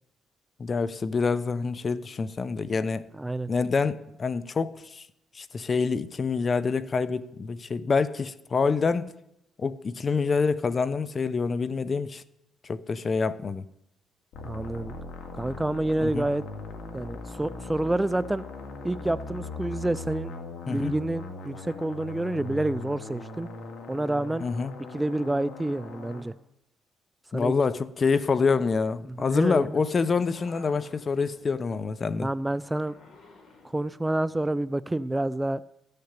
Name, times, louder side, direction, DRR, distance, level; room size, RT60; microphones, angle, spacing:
voice 1, 0.6-3.1 3.5-5.0 5.3-9.1 9.6-12.2 12.6-13.6 16.0-16.3 20.7-20.9 24.4-24.7 27.3-32.3, left 4 dB, 40° left, 0.7 m, -26 dB
voice 2, 3.2-3.5 14.4-14.9 15.4-16.4 16.9-18.4 18.8-20.3 20.7-23.5 23.9-24.5 24.9-26.3 27.3-27.5 29.1-29.8 32.2-32.9 33.6-35.6, right 1 dB, 10° right, 0.4 m, -28 dB
sound 1, 14.3-26.2, left 3 dB, 80° left, 2.1 m, -40 dB
sound 2, 28.1-33.8, left 3 dB, 55° left, 3.5 m, -55 dB
14.0 x 6.6 x 8.2 m
cardioid pair, 90°, 0 cm